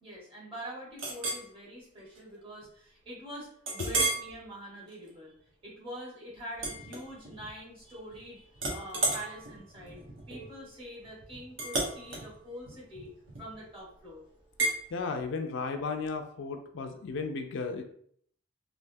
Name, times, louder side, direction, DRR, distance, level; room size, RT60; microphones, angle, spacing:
voice 1, 0.0-5.3 5.6-10.0 10.3-13.1 13.4-14.2, equal, 30° right, -4 dB, 1.2 m, -45 dB
Chink clink, 1.0-1.5 2.0-2.2 2.6-2.7 3.7-4.3 4.8-5.1 6.6-7.5 7.8-8.2 8.6-13.7 14.6-14.8, right 2 dB, 70° right, 0.9 m, -33 dB
voice 2, 14.9-17.8, left 4 dB, 70° left, 5 dB, 0.4 m, -34 dB
3.3 x 2.6 x 2.6 m, 0.63 s
head